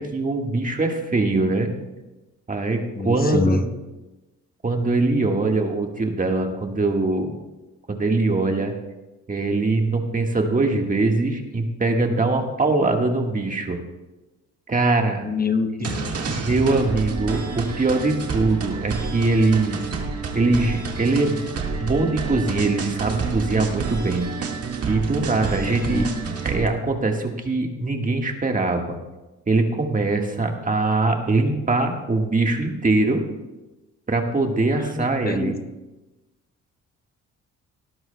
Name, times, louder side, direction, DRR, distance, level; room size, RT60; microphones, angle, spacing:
voice 1, 0.0-1.7 2.5-3.7 4.6-7.3 7.9-8.7 9.3-13.8 14.7-15.3 15.8-15.9 16.4-19.8 20.3-21.4 21.8-24.3 24.8-26.0 26.4-29.0 29.5-33.2 34.1-35.6, right 3 dB, 25° right, 3 dB, 1.6 m, -22 dB
voice 2, 3.0-3.7 15.2-16.4 25.6-26.1 34.8-35.6, left 4 dB, 30° left, 7 dB, 1.1 m, -26 dB
sound 1, 15.8-26.7, right 4 dB, 50° right, 1.8 m, -29 dB
18.0 x 12.5 x 2.2 m, 1.1 s
cardioid pair, 90°, 30 cm